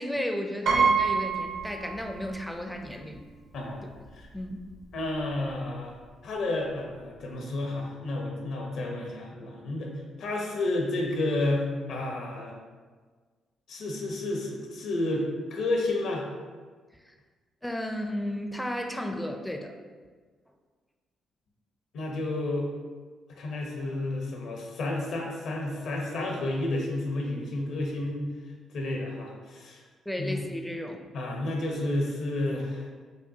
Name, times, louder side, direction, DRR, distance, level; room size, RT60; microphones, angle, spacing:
voice 1, 0.0-3.2 4.3-4.6 17.1-17.2 17.6-19.8 30.1-31.0, left 1 dB, 5° left, 3 dB, 0.4 m, -33 dB
Piano, 0.7-2.5 2.8-2.9 4.1-4.2 4.4-4.7, right 5 dB, 70° right, 0.7 m, -26 dB
voice 2, 4.9-5.9 6.2-9.9 10.2-12.5 13.7-16.3 21.9-22.7 23.3-28.3 28.7-29.8 30.2-30.4 31.1-32.9, left 2 dB, 70° left, 0 dB, 0.8 m, -31 dB
5.1 x 2.3 x 2.7 m, 1.5 s
cardioid pair, 90°, 0 cm